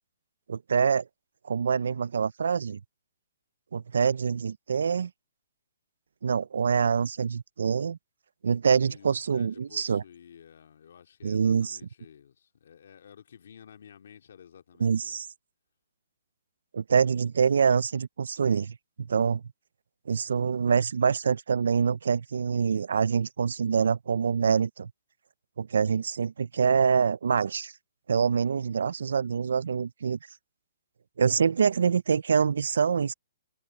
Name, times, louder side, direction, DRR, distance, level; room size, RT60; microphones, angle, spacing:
voice 1, 0.5-1.0 1.5-2.8 3.7-5.1 6.2-8.0 8.4-10.0 11.2-11.8 14.8-15.3 16.7-19.4 20.1-24.9 25.6-27.7 28.1-30.2 31.2-33.1, right 6 dB, 75° right, 0.3 m, -25 dB
voice 2, 8.7-15.2, left 8 dB, 55° left, 2.8 m, -52 dB
hypercardioid pair, 175°, 0 cm